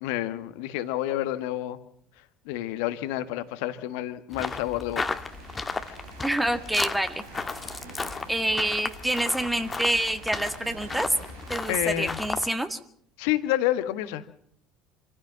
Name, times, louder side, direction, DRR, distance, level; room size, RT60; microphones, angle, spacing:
voice 1, 0.0-1.8 2.4-5.2 11.7-12.2 13.2-14.2, left 14 dB, 65° left, 11 dB, 1.6 m, -29 dB
sound 1, 4.3-12.5, left 4 dB, 20° left, 1.5 m, -35 dB
sound 2, 4.9-12.5, right 3 dB, 75° right, 3.2 m, -46 dB
voice 2, 6.2-7.2 8.3-11.1 11.5-12.8, right 1 dB, 5° right, 8 dB, 1.9 m, -27 dB
27.0 x 15.5 x 7.5 m, 0.67 s
figure-of-eight pair, 60°, 0 cm